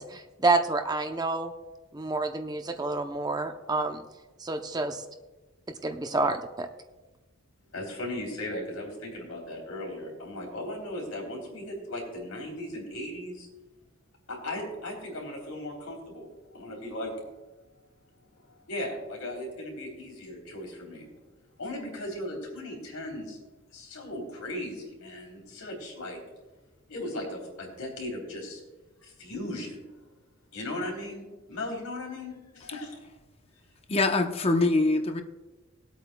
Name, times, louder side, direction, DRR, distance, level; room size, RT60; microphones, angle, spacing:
voice 1, 0.0-1.5 1.9-4.0 4.4-5.0 5.8-6.7, right 3 dB, 20° right, 7 dB, 0.6 m, -28 dB
voice 2, 7.7-13.5 14.3-17.1 18.3-21.1 21.6-23.4 23.7-26.2 26.9-28.6 29.0-30.1 30.5-33.0, left 1 dB, 90° left, -1 dB, 3.5 m, -37 dB
voice 3, 33.9-35.2, left 2 dB, 30° left, 6 dB, 0.7 m, -24 dB
20.5 x 8.3 x 2.3 m, 1.2 s
head